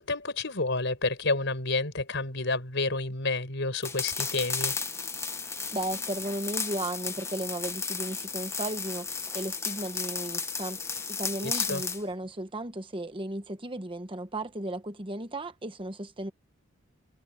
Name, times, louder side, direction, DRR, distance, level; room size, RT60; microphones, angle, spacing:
voice 1, 0.0-4.8 11.4-11.8, left 3 dB, 60° left, 5.8 m, -30 dB
sound 1, 3.8-12.0, left 5 dB, 15° left, 1.0 m, -34 dB
voice 2, 5.7-10.8 11.1-16.3, right 1 dB, 25° right, 1.1 m, -35 dB
head